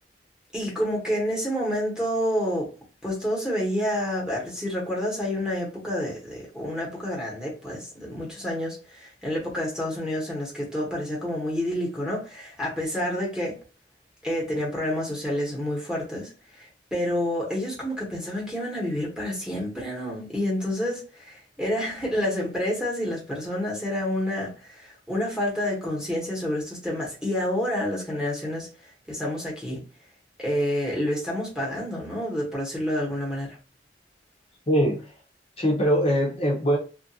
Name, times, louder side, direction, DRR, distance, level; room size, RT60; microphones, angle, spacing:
voice 1, 0.5-2.7 3.0-13.6 14.2-16.3 16.6-28.7 29.1-29.8 30.4-33.6, left 1 dB, 5° right, 1.0 m, -28 dB
voice 2, 34.7-35.1 35.6-36.8, equal, 35° left, 0.7 m, -22 dB
2.8 x 2.5 x 2.7 m
head